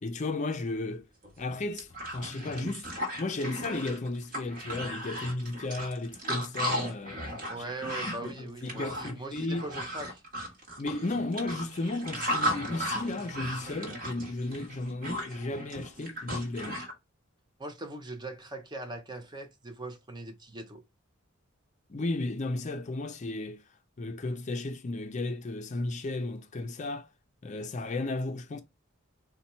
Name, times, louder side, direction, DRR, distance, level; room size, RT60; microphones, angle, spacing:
voice 1, 0.0-1.1 1.4-2.9 3.2-7.2 7.6-7.7 8.0-9.7 10.8-16.8 21.9-23.6 24.0-27.1 27.4-28.6, left 2 dB, 35° left, 0.4 m, -34 dB
sound 1, 1.2-1.3 1.6-16.9, equal, 40° right, 1.2 m, -35 dB
voice 2, 7.5-10.2 17.6-20.8, right 2 dB, 20° right, 0.5 m, -40 dB
4.1 x 2.2 x 4.2 m
head